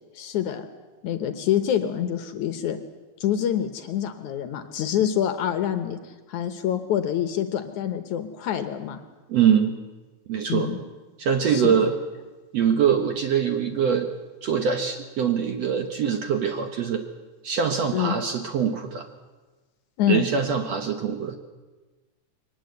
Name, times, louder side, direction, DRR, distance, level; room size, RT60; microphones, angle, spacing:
voice 1, 0.2-0.7 1.0-2.8 3.2-9.0 10.5-10.8 11.5-11.8 17.9-18.2 20.0-20.2, left 10 dB, 65° left, 9 dB, 2.2 m, -26 dB
voice 2, 9.3-9.8 10.3-10.7 11.2-11.9 12.5-14.1 14.4-17.0 17.4-19.1 20.1-21.4, right 7 dB, 60° right, 6 dB, 1.9 m, -23 dB
22.5 x 19.0 x 8.0 m, 1.2 s
omnidirectional pair, 4.1 m